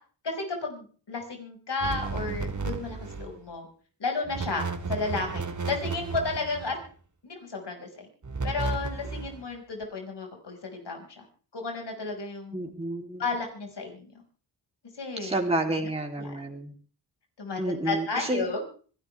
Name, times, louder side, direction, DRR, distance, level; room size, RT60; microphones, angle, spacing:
voice 1, 0.2-3.7 4.0-6.8 7.2-8.1 8.4-11.2 11.5-12.6 13.2-14.1 15.0-15.4 16.2-16.4 17.4-18.6, left 3 dB, 65° left, 2 dB, 5.8 m, -33 dB
sound 1, 1.8-3.4 4.2-6.9 8.2-9.4, right 4 dB, 40° right, 2.1 m, -33 dB
voice 2, 12.5-13.2 15.2-16.7 17.6-18.4, right 2 dB, 15° right, 0 dB, 3.3 m, -30 dB
25.5 x 12.5 x 3.5 m, 0.41 s
supercardioid pair, 40°, 45 cm